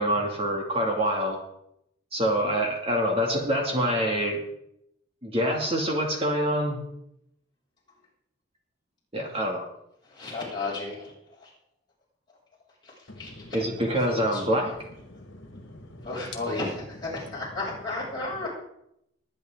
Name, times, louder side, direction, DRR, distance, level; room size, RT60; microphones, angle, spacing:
voice 1, 0.0-1.4 2.1-4.4 5.2-6.8 9.1-9.6 13.5-14.7, equal, 30° right, 1 dB, 2.5 m, -25 dB
voice 2, 10.1-11.1 11.4-11.5 13.2-13.3 14.1-14.4 16.0-18.5, left 2 dB, 25° left, -6 dB, 7.4 m, -33 dB
voice 3, 13.1-13.5 15.1-16.1 18.4-18.5, left 2 dB, 75° left, 5 dB, 1.8 m, -44 dB
21.0 x 10.0 x 3.9 m, 0.77 s
head